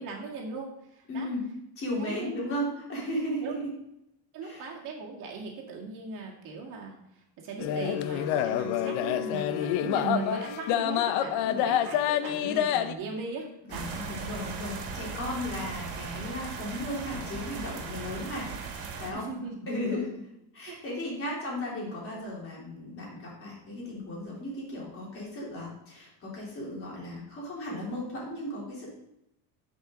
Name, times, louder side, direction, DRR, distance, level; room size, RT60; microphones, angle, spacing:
voice 1, 0.0-1.3 2.0-2.3 3.4-3.5 4.3-7.0 7.4-13.5 13.7-13.9 19.1-19.6 19.9-20.0 20.7-20.8, right 4 dB, 50° right, -2 dB, 2.1 m, -38 dB
voice 2, 1.1-1.4 1.8-3.7 4.4-4.7 11.4-11.7 13.7-18.5 18.7-19.3 19.7-20.1 20.5-28.9, left 1 dB, 35° left, -4 dB, 3.4 m, -35 dB
sound 1, 7.6-12.9, left 10 dB, 75° left, 0.7 m, -27 dB
sound 2, 13.7-19.1, right 5 dB, 80° right, 2.0 m, -38 dB
10.5 x 5.6 x 3.8 m, 0.84 s
cardioid pair, 145°, 39 cm